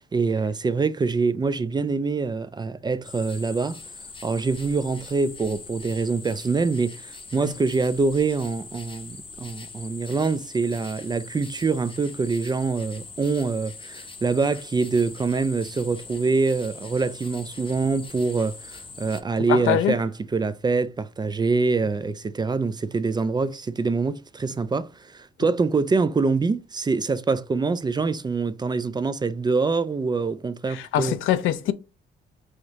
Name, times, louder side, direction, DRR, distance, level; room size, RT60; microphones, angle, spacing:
voice 1, 0.0-3.8 4.2-31.2, right 4 dB, 20° right, 0.3 m, -25 dB
sound 1, 3.0-19.2, left 4 dB, 25° left, 0.8 m, -42 dB
voice 2, 19.5-19.9 30.7-31.7, left 11 dB, 80° left, 0.5 m, -23 dB
4.9 x 3.0 x 2.6 m
cardioid pair, 90°, 20 cm